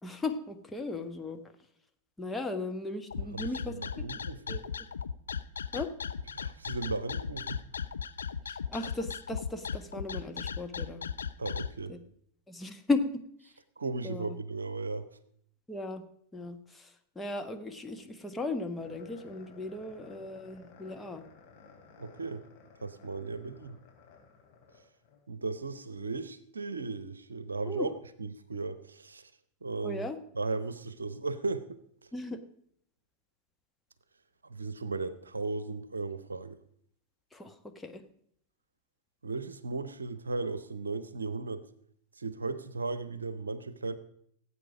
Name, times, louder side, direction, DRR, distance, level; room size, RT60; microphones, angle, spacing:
voice 1, 0.0-1.5 2.2-3.7 4.5-4.7 5.7-5.9 8.5-11.1 11.9-12.0 12.5-13.0 14.0-14.4 15.7-16.0 16.3-21.2 27.7-27.9 29.8-30.2 32.1-32.4 37.3-38.0, left 3 dB, 10° left, 5 dB, 1.3 m, -36 dB
sound 1, 3.1-11.7, left 7 dB, 70° left, 0.5 m, -36 dB
voice 2, 3.3-4.6 6.3-7.6 11.4-12.0 13.8-15.1 22.0-22.4 22.8-23.8 25.3-27.9 28.2-29.3 29.6-30.0 30.4-31.8 34.5-36.6 39.2-41.6 42.2-44.0, right 3 dB, 75° right, 14 dB, 0.8 m, -36 dB
sound 2, 18.8-25.2, left 5 dB, 45° left, 3.9 m, -56 dB
17.5 x 8.5 x 5.0 m, 0.68 s
figure-of-eight pair, 90°, 0 cm